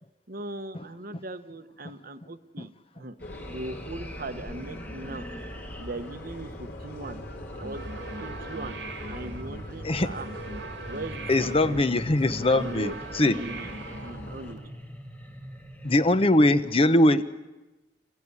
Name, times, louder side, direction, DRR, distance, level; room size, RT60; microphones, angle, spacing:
voice 1, 0.3-3.2 3.5-5.2 5.8-7.2 7.6-7.8 8.2-10.3 10.9-11.8 12.3-13.0 13.2-14.6, right 2 dB, 55° right, 9 dB, 1.2 m, -39 dB
sound 1, 3.2-14.5, left 1 dB, 85° left, 5.4 m, -41 dB
sound 2, 3.2-16.7, equal, 10° left, 2.0 m, -44 dB
Sci-Fi Alarm, 7.5-14.7, right 3 dB, 80° right, 2.0 m, -41 dB
voice 2, 11.3-13.3 15.8-17.2, left 1 dB, 35° left, 12 dB, 0.8 m, -21 dB
28.0 x 15.0 x 9.8 m, 1.1 s
head